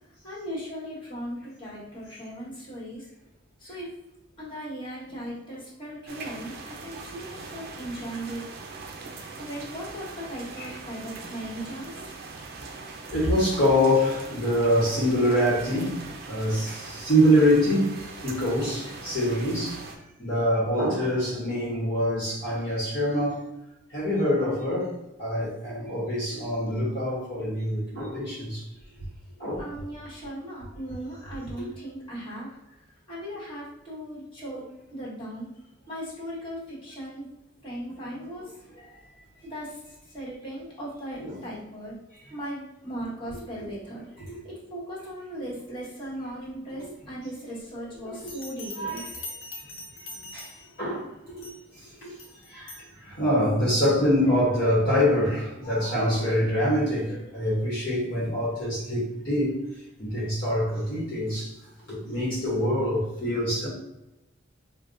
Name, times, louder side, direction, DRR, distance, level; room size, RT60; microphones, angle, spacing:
voice 1, 0.2-3.1 3.6-3.9 4.4-8.4 9.4-12.1 29.6-35.5 35.9-37.3 37.6-38.5 39.4-41.9 42.3-44.1 44.4-49.0, equal, 25° left, -7 dB, 1.4 m, -38 dB
sound 1, 6.1-20.0, right 3 dB, 55° right, 0.5 m, -41 dB
voice 2, 13.1-19.8 20.2-23.4 23.9-24.9 25.2-28.6 29.4-29.6 31.6-31.7 38.0-38.3 41.2-41.4 48.8-49.0 50.3-50.5 50.8-51.5 51.8-52.1 52.5-59.6 60.0-61.5 61.9-63.7, equal, 50° left, -7 dB, 1.1 m, -25 dB
Bell, 48.2-50.9 51.4-51.7 52.2-52.9, left 2 dB, 90° left, 0.6 m, -42 dB
5.0 x 2.2 x 2.6 m, 0.95 s
head